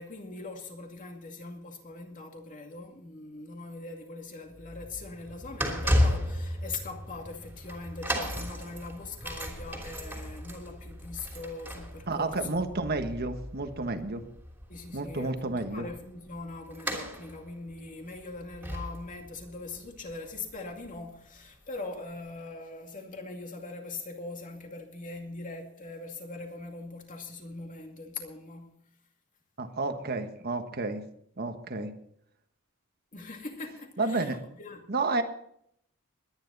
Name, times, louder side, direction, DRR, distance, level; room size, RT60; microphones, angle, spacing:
voice 1, 0.0-12.6 14.7-28.8 33.1-34.9, left 3 dB, 35° left, 2.4 m, -41 dB
sound 1, 4.5-21.5 22.1-22.2, equal, 10° right, 3.1 m, -35 dB
voice 2, 12.1-14.2 14.9-15.9 29.6-31.0 31.4-31.9 34.0-34.4 34.9-35.2, right 3 dB, 45° right, 1.4 m, -31 dB
21.5 x 10.5 x 4.1 m
head